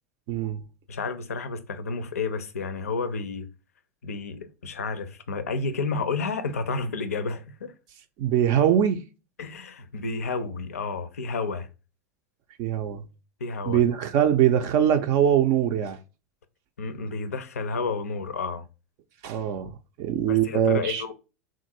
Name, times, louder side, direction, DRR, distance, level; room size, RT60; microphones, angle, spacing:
voice 1, 0.3-0.6 8.2-9.0 12.6-13.0 13.7-16.0 19.2-21.0, right 10 dB, 45° right, 0.4 m, -22 dB
voice 2, 0.9-3.5 4.0-7.7 9.4-11.7 13.4-13.8 16.8-18.7 20.3-21.1, left 4 dB, 75° left, 0.4 m, -31 dB
3.5 x 2.5 x 2.6 m
figure-of-eight pair, 85°, 8 cm